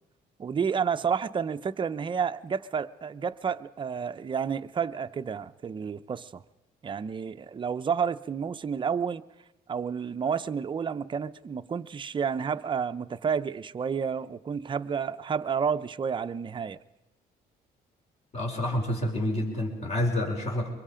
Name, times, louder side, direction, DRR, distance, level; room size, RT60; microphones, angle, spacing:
voice 1, 0.4-6.4 6.8-9.2 9.7-16.8, right 6 dB, 30° right, 0.7 m, -30 dB
voice 2, 18.3-20.7, left 1 dB, 40° left, 4.7 m, -28 dB
24.5 x 22.5 x 5.1 m
cardioid pair, 110°, 17 cm